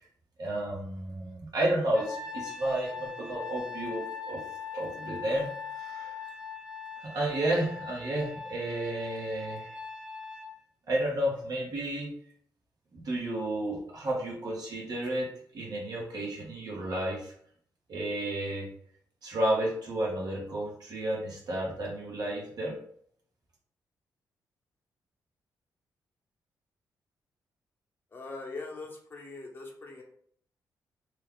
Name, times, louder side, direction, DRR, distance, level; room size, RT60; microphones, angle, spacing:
voice 1, 0.4-4.4 4.7-6.1 7.0-9.7 10.9-12.1 12.9-15.3 15.5-17.3 17.9-18.7 19.2-22.8, right 1 dB, 60° right, -3 dB, 1.3 m, -32 dB
Trumpet, 1.9-10.5, left 5 dB, 10° right, 0.8 m, -41 dB
voice 2, 28.1-30.0, left 3 dB, 30° left, -1 dB, 0.9 m, -41 dB
3.1 x 2.3 x 3.7 m, 0.62 s
cardioid pair, 105°, 8 cm